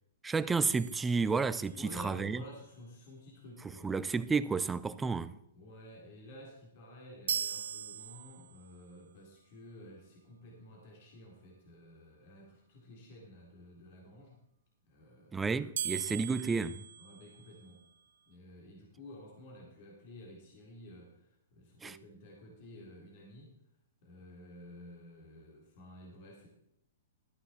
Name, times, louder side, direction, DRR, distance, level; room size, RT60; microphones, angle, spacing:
voice 1, 0.2-2.4 3.8-5.4 15.3-16.8 21.8-22.0, right 4 dB, 10° right, 0.5 m, -31 dB
sound 1, 0.7-2.0 7.3-8.8 15.8-17.9, right 9 dB, 70° right, 0.7 m, -40 dB
voice 2, 1.7-3.9 5.5-14.4 14.8-15.4 15.9-16.1 17.0-17.8 18.2-23.6 24.0-26.5, left 1 dB, 50° left, 3.4 m, -52 dB
13.0 x 9.0 x 4.3 m
hypercardioid pair, 145°, 0 cm